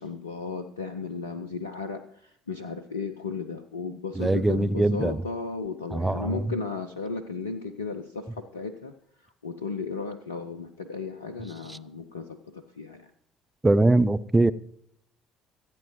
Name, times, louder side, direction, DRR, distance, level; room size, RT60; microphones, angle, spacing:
voice 1, 0.0-8.9 9.2-13.1, left 4 dB, 80° left, 0.6 m, -35 dB
voice 2, 4.2-5.2 5.9-6.4 13.6-14.5, right 2 dB, 10° right, 0.6 m, -22 dB
25.5 x 9.1 x 3.1 m
figure-of-eight pair, 55°, 0 cm